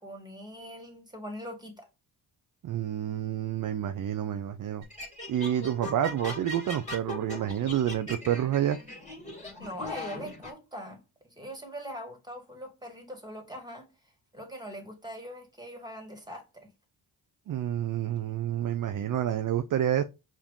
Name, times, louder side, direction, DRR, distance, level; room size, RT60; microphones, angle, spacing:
voice 1, 0.0-1.9 9.6-13.9 14.3-16.7, equal, 10° right, 1.8 m, -42 dB
voice 2, 2.6-4.8 5.3-8.8 17.5-20.0, right 10 dB, 45° right, 0.5 m, -29 dB
sound 1, 4.8-10.5, left 1 dB, 15° left, 2.0 m, -40 dB
4.9 x 2.8 x 3.6 m
supercardioid pair, 55°, 47 cm